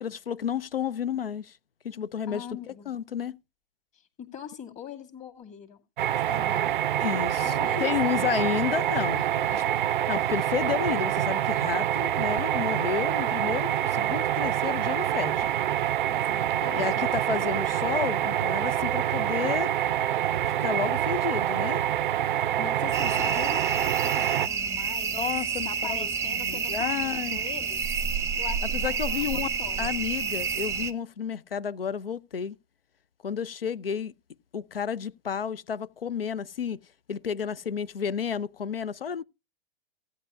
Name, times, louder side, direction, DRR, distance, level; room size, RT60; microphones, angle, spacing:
voice 1, 0.0-1.5 1.8-3.4 7.0-9.3 9.5-9.6 10.1-15.5 16.8-19.7 20.6-21.8 25.1-27.4 28.6-29.5 29.8-32.6 33.2-34.1 34.5-36.8 37.1-39.2, left 8 dB, 75° left, 0.6 m, -31 dB
voice 2, 2.3-2.9 3.9-5.8 6.1-6.8 7.4-8.3 9.1-9.9 10.3-10.5 16.0-17.1 22.6-27.8 28.4-29.9, left 8 dB, 25° left, 2.0 m, -42 dB
sound 1, 6.0-24.5, right 11 dB, 60° right, 0.4 m, -26 dB
sound 2, 22.9-30.9, right 6 dB, 10° right, 0.7 m, -29 dB
16.0 x 9.4 x 2.4 m
figure-of-eight pair, 105°, 29 cm